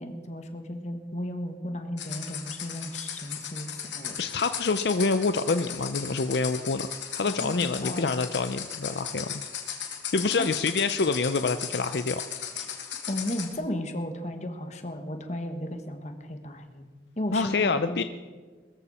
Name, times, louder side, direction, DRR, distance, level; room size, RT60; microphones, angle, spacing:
voice 1, 0.0-4.2 7.3-8.2 10.4-10.5 12.5-12.7 13.1-16.9 17.2-18.0, left 1 dB, 40° left, 6 dB, 1.5 m, -35 dB
sound 1, 2.0-13.5, left 8 dB, 85° left, 2.4 m, -37 dB
voice 2, 4.2-6.9 7.1-9.3 10.1-12.2 17.3-18.0, left 4 dB, 65° left, 10 dB, 0.5 m, -26 dB
21.5 x 14.0 x 4.3 m, 1.5 s
head